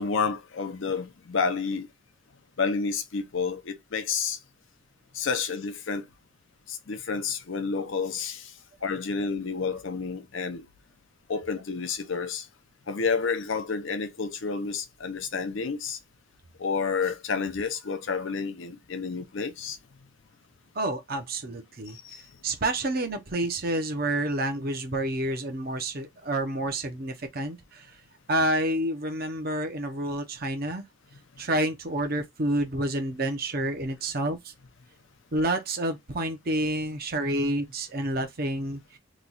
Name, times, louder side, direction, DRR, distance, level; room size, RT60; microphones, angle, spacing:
voice 1, 0.0-1.9 2.6-4.4 5.1-6.1 6.7-8.5 8.8-10.7 11.3-12.5 12.9-16.0 16.6-19.8 21.9-22.2, left 5 dB, 65° left, 0.6 m, -30 dB
voice 2, 20.7-22.0 22.4-28.0 28.3-30.9 31.4-34.5 35.3-39.0, right 1 dB, 45° right, 0.7 m, -29 dB
3.0 x 2.3 x 3.8 m
head